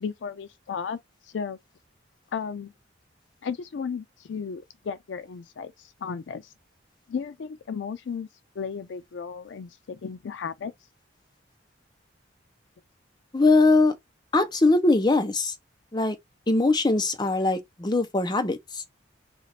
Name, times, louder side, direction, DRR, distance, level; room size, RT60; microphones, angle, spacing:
voice 1, 0.0-1.0 1.3-1.6 2.3-2.7 3.4-6.5 7.1-8.3 8.6-10.7, left 6 dB, 70° left, 0.4 m, -34 dB
voice 2, 13.3-14.0 14.3-15.5 15.9-16.2 16.5-18.8, left 2 dB, 25° left, 0.6 m, -21 dB
3.8 x 2.4 x 3.2 m
head